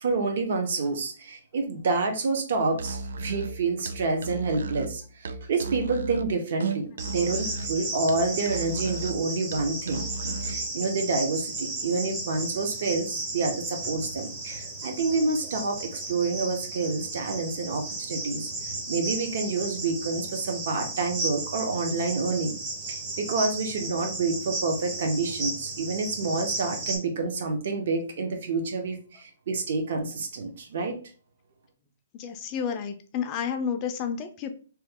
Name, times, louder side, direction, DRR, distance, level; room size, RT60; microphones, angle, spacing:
voice 1, 0.0-18.5 18.9-22.5 22.9-31.0, right 3 dB, 55° right, 4 dB, 0.7 m, -28 dB
Musical instrument, 2.7-10.7, right 3 dB, 80° right, 0.3 m, -35 dB
Cricket, 7.0-27.0, right 3 dB, 20° right, 0.6 m, -34 dB
voice 2, 32.1-34.5, left 7 dB, 25° left, 6 dB, 0.3 m, -31 dB
3.0 x 2.2 x 3.5 m, 0.40 s
hypercardioid pair, 165°, 0 cm